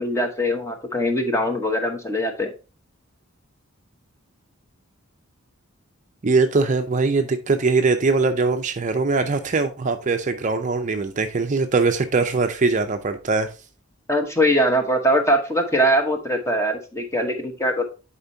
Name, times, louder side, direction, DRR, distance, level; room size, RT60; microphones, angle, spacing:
voice 1, 0.0-2.5 14.1-17.8, equal, 15° left, 1.0 m, -22 dB
voice 2, 6.2-13.5, right 4 dB, 35° right, 0.5 m, -21 dB
10.0 x 4.4 x 2.7 m
head